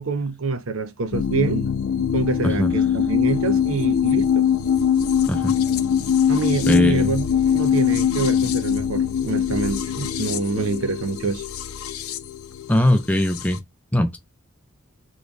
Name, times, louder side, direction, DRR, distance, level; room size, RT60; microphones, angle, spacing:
voice 1, 0.0-1.7 2.1-4.4 6.3-7.3 7.5-11.4, right 4 dB, 75° right, 0.6 m, -26 dB
sound 1, 1.1-13.6, left 8 dB, 85° left, 0.5 m, -22 dB
voice 2, 6.7-7.1 12.7-13.6 13.9-14.2, equal, 5° left, 0.5 m, -20 dB
3.1 x 2.2 x 3.8 m
head